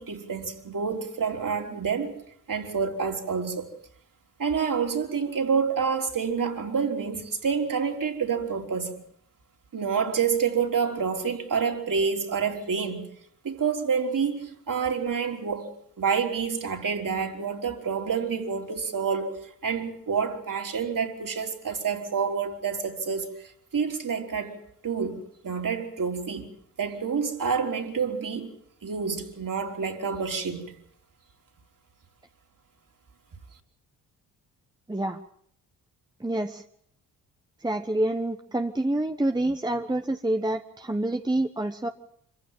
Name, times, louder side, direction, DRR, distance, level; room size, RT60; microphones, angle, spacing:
voice 1, 0.0-2.2 2.5-3.7 4.4-9.0 9.7-13.0 13.4-19.3 19.6-24.6 24.8-25.2 25.4-26.5 26.8-28.5 28.8-30.7, right 6 dB, 40° right, 3.7 m, -28 dB
voice 2, 34.9-35.2 36.2-36.6 37.6-41.9, right 1 dB, 10° right, 1.2 m, -27 dB
26.0 x 15.5 x 7.5 m
hypercardioid pair, 45°, 47 cm